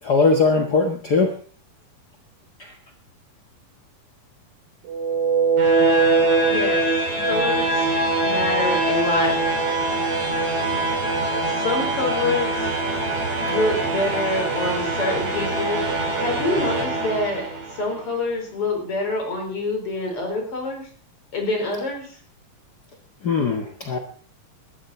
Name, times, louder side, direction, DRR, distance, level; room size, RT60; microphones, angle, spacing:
voice 1, 0.0-1.3 2.6-2.7 7.2-7.3 23.2-24.0, left 4 dB, 60° left, 4 dB, 1.0 m, -20 dB
sound 1, 4.9-17.9, right 3 dB, 45° right, 3.9 m, -22 dB
voice 2, 6.4-6.8 7.2-7.9 8.2-9.3 11.5-12.7 13.4-20.9 21.3-22.2, left 2 dB, 40° left, 3 dB, 5.1 m, -26 dB
19.0 x 13.0 x 4.3 m, 0.41 s
omnidirectional pair, 4.1 m